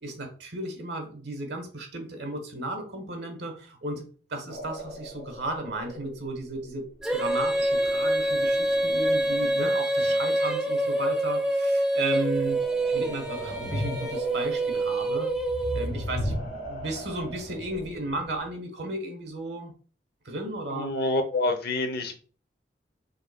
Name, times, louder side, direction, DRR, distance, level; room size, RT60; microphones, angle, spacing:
voice 1, 0.0-6.8 7.1-12.6 12.9-15.3 15.7-19.7 20.2-20.9, right 2 dB, 70° right, 5 dB, 1.3 m, -34 dB
sound 1, 4.5-9.6 12.2-18.5, equal, 80° left, 1.8 m, -38 dB
Female singing, 7.0-16.2, right 1 dB, 5° right, 0.6 m, -26 dB
voice 2, 20.7-22.2, left 2 dB, 60° left, 6 dB, 0.8 m, -27 dB
5.4 x 3.7 x 2.2 m, 0.40 s
head